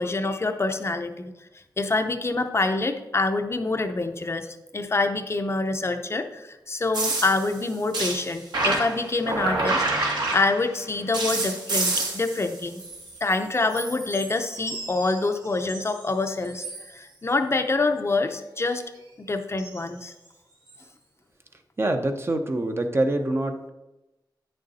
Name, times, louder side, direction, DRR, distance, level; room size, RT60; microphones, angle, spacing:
voice 1, 0.0-1.3 1.8-4.5 4.7-12.8 13.2-18.9 19.2-20.1, left 3 dB, 35° left, 7 dB, 0.6 m, -26 dB
sound 1, 6.9-10.8 11.1-13.4 13.7-16.0 16.4-16.9 19.6-19.8 20.7-20.8, right 2 dB, 70° right, 2.1 m, -29 dB
voice 2, 21.8-23.7, right 1 dB, 35° right, 6 dB, 0.7 m, -25 dB
9.3 x 6.6 x 4.1 m, 0.99 s
wide cardioid pair, 110°, 8 cm